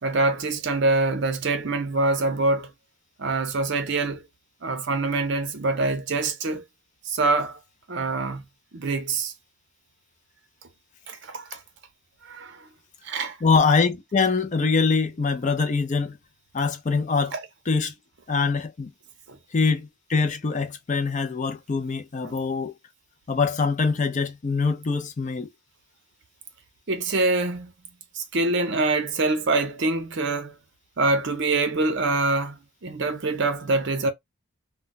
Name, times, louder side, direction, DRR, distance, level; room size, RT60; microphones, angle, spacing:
voice 1, 0.0-2.7 3.2-4.2 4.6-6.6 7.0-7.6 7.9-8.4 8.7-9.3 11.1-11.6 12.3-12.7 13.0-13.4 17.3-17.4 19.3-19.4 22.2-22.3 26.9-27.7 28.1-30.6 31.0-34.1, right 3 dB, 55° right, 0.6 m, -25 dB
voice 2, 13.4-16.2 16.5-17.3 17.7-17.9 18.3-18.9 19.5-22.7 23.3-25.5, left 4 dB, 35° left, 0.4 m, -23 dB
2.2 x 2.1 x 3.8 m
head